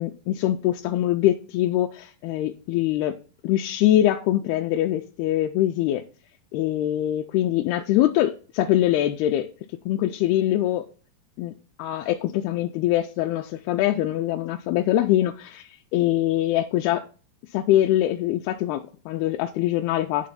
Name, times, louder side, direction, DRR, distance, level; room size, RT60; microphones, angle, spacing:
voice 1, 0.0-3.2 3.4-6.0 6.5-9.5 9.9-10.8 11.4-11.5 11.8-17.0 17.5-20.3, left 13 dB, 85° left, 4 dB, 2.4 m, -23 dB
10.5 x 3.5 x 5.5 m, 0.37 s
omnidirectional pair, 4.5 m